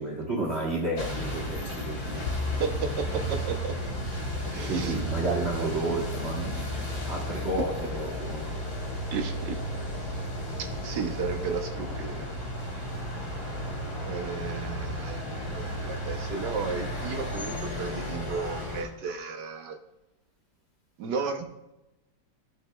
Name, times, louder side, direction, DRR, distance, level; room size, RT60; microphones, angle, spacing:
voice 1, 0.0-2.4 4.7-8.6, right 2 dB, 35° right, 1.2 m, -31 dB
sound 1, 1.0-18.8, equal, 85° left, 4.2 m, -33 dB
voice 2, 2.6-3.7 4.2-5.7 9.1-9.6 10.6-12.3 12.7-12.9 14.0-19.8 21.0-21.5, right 5 dB, 65° right, 1.2 m, -34 dB
sound 2, 7.4-15.5, left 1 dB, 15° left, 1.4 m, -49 dB
16.0 x 6.5 x 2.3 m
omnidirectional pair, 2.4 m